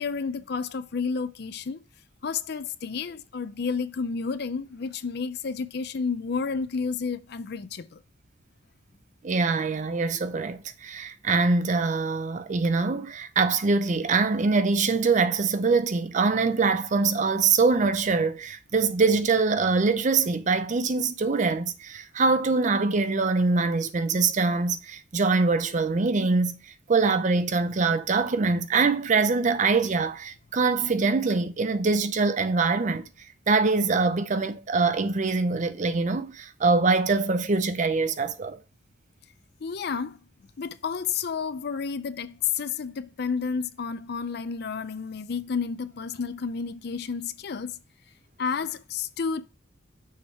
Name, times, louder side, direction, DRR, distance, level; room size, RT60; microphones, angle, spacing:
voice 1, 0.0-1.8 2.2-8.0 39.6-40.2 40.6-47.8 48.4-49.4, left 5 dB, 55° left, 0.5 m, -31 dB
voice 2, 9.2-26.6 26.9-33.0 33.5-38.6, right 4 dB, 40° right, 0.5 m, -24 dB
6.5 x 3.6 x 4.1 m
head